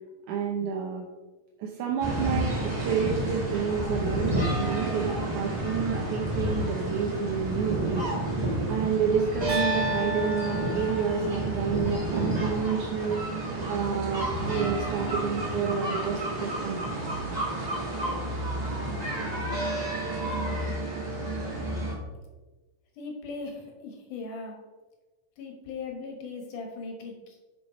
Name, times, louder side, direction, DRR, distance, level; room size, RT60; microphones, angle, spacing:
voice 1, 0.3-1.1 1.6-16.9, right 6 dB, 75° right, 0 dB, 2.1 m, -30 dB
sound 1, 2.0-21.9, right 2 dB, 20° right, 1.4 m, -30 dB
sound 2, 9.5-11.6, left 2 dB, 45° right, 3.7 m, -33 dB
voice 2, 23.0-24.6 25.4-27.4, left 4 dB, 70° left, 2 dB, 2.7 m, -38 dB
6.5 x 6.4 x 5.1 m, 1.2 s
omnidirectional pair, 3.8 m